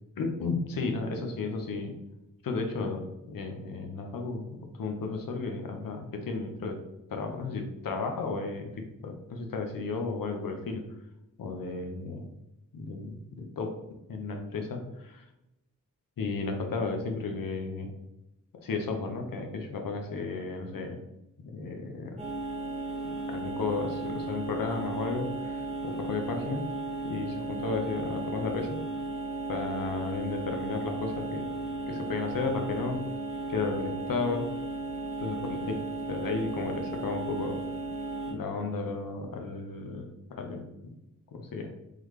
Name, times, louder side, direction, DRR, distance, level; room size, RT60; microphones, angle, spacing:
voice 1, 0.2-2.0 2.4-6.8 7.1-10.8 11.4-12.3 12.7-13.8 14.1-15.2 16.2-17.9 18.5-21.0 21.4-22.2 23.3-26.7 27.0-28.8 29.5-31.5 31.9-33.1 33.5-34.5 35.2-37.6 38.3-40.9 41.3-41.7, left 4 dB, 80° left, 4 dB, 0.8 m, -33 dB
sound 1, 22.2-38.3, right 2 dB, 20° right, 1.1 m, -35 dB
3.8 x 3.2 x 3.1 m, 0.91 s
wide cardioid pair, 95°, 34 cm